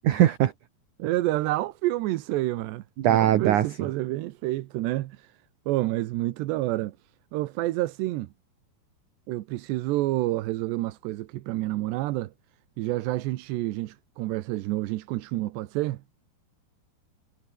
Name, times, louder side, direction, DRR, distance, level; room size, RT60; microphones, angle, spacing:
voice 1, 0.0-0.5 3.0-3.9, right 12 dB, 65° right, 2.1 m, -21 dB
voice 2, 1.0-5.3 5.7-7.0 7.3-8.3 9.3-12.3 12.8-16.0, right 17 dB, 80° right, 3.1 m, -29 dB
omnidirectional pair, 4.9 m